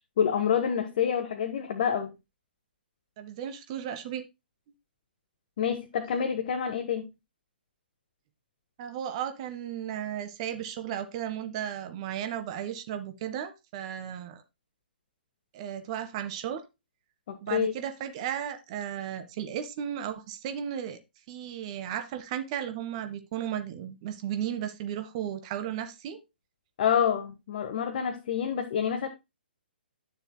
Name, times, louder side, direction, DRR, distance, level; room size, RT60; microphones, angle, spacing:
voice 1, 0.2-2.1 5.6-7.1 17.3-17.7 26.8-29.1, left 8 dB, 45° left, 1.4 m, -27 dB
voice 2, 3.2-4.2 8.8-14.4 15.5-16.6 17.4-21.0 21.3-26.2, right 10 dB, 35° right, 1.6 m, -35 dB
12.5 x 7.0 x 2.2 m
figure-of-eight pair, 130°, 6 cm